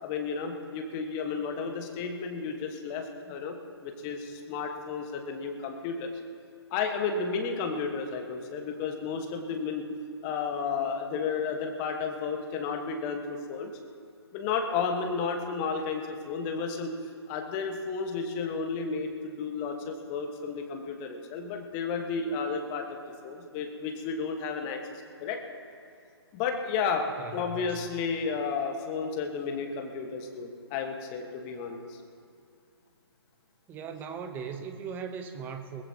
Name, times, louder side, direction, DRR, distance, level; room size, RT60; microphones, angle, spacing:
voice 1, 0.0-3.6 3.8-6.1 6.7-9.9 10.2-13.7 14.3-16.9 17.3-22.9 23.2-25.4 26.3-27.1 27.3-32.0, left 5 dB, 25° left, 4 dB, 1.4 m, -32 dB
voice 2, 27.2-27.8 33.7-35.8, right 6 dB, 15° right, 7 dB, 0.9 m, -39 dB
21.5 x 19.5 x 2.9 m, 2.3 s
figure-of-eight pair, 140°, 14 cm